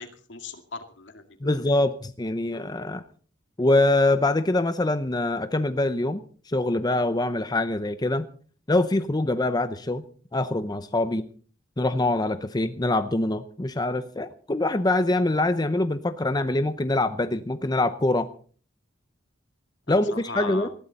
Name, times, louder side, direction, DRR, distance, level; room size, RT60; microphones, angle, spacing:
voice 1, 0.0-1.6 19.9-20.7, left 4 dB, 65° left, 7 dB, 2.2 m, -39 dB
voice 2, 1.4-3.0 3.6-8.3 8.7-10.0 10.3-11.2 11.8-18.3 19.9-20.7, left 2 dB, 20° left, 10 dB, 0.7 m, -24 dB
19.5 x 15.0 x 4.1 m, 0.43 s
head